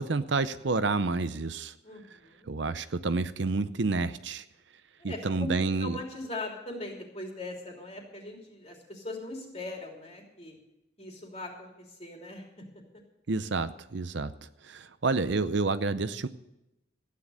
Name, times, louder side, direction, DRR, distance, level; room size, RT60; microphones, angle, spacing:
voice 1, 0.0-1.7 2.5-4.4 5.0-6.0 13.3-16.3, right 3 dB, 60° right, 12 dB, 0.6 m, -29 dB
voice 2, 1.8-2.5 5.0-10.6 11.0-11.7 12.0-12.4, left 2 dB, 30° left, 1 dB, 3.1 m, -40 dB
15.0 x 9.8 x 6.4 m, 0.90 s
head